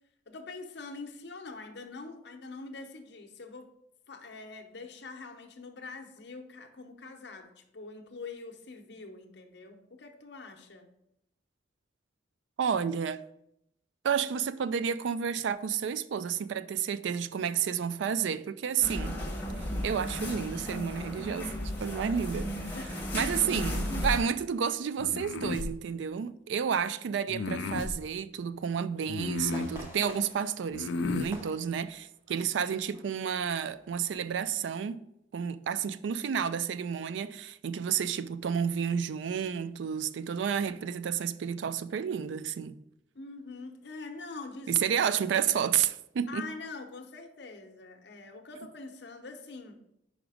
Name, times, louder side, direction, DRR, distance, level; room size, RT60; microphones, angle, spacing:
voice 1, 0.3-3.7 4.1-10.9 22.7-23.3 43.1-44.7 46.3-49.8, left 3 dB, 60° left, 0.8 m, -44 dB
voice 2, 12.6-13.2 14.0-19.2 19.8-21.5 21.8-22.8 23.1-30.9 31.1-35.0 35.3-42.8 44.7-46.5, right 7 dB, 75° right, 0.3 m, -31 dB
sound 1, 18.8-24.2, left 1 dB, 10° left, 1.1 m, -34 dB
sound 2, 25.0-25.7 27.3-27.9 29.1-29.8 30.7-31.3, left 3 dB, 80° left, 0.5 m, -33 dB
sound 3, 29.5-32.5 32.9-33.1 33.6-33.9 34.3-34.4, equal, 15° right, 1.0 m, -49 dB
5.0 x 4.9 x 4.9 m
head